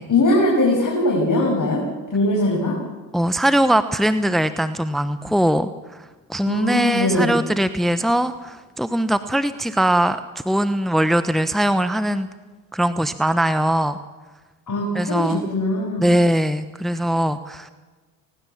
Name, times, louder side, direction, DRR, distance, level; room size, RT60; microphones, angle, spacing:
voice 1, 0.1-1.8 2.1-2.8 6.4-7.3 14.7-16.1, left 1 dB, 40° left, -3 dB, 7.0 m, -20 dB
voice 2, 3.1-12.3 12.7-14.0 14.9-15.4 16.0-17.7, right 1 dB, ahead, 12 dB, 1.1 m, -21 dB
20.0 x 19.0 x 7.4 m, 1.3 s
hypercardioid pair, 50°, 45 cm